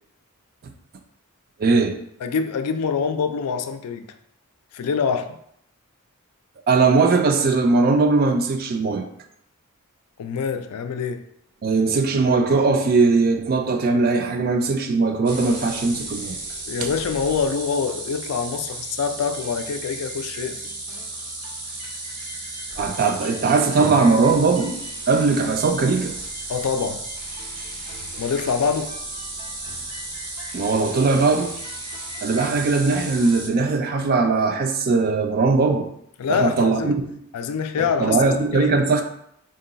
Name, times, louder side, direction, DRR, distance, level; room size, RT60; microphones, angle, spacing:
voice 1, 1.6-2.0 6.7-9.1 11.6-16.4 16.8-16.9 22.8-24.8 25.1-26.1 30.5-31.6 32.2-35.9 36.3-37.2 37.8-39.0, right 4 dB, 45° right, 6 dB, 0.4 m, -20 dB
voice 2, 2.2-4.0 4.7-5.4 10.2-11.2 16.7-20.7 26.5-27.0 28.2-28.9 36.2-37.0 37.3-38.2 38.5-38.8, left 6 dB, 85° left, 8 dB, 0.4 m, -25 dB
sound 1, 15.3-33.5, right 2 dB, 85° right, 0.9 m, -34 dB
3.8 x 2.2 x 3.9 m, 0.73 s
head